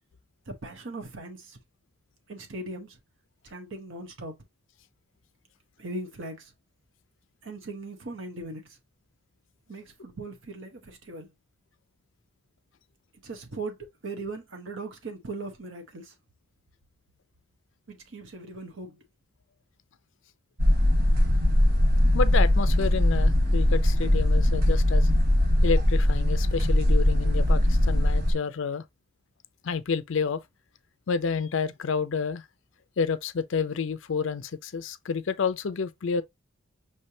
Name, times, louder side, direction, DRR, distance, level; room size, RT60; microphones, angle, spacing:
voice 1, 0.5-1.6 2.3-3.0 3.4-4.3 5.8-6.5 7.4-8.7 9.7-11.3 13.2-16.1 17.9-19.0, right 2 dB, 60° right, 0.9 m, -39 dB
sound 1, 20.6-28.3, left 1 dB, 45° right, 1.2 m, -21 dB
voice 2, 22.1-25.1 25.6-28.8 29.6-30.4 31.1-32.4 33.0-36.2, left 5 dB, 65° left, 0.5 m, -29 dB
5.6 x 3.2 x 2.7 m
head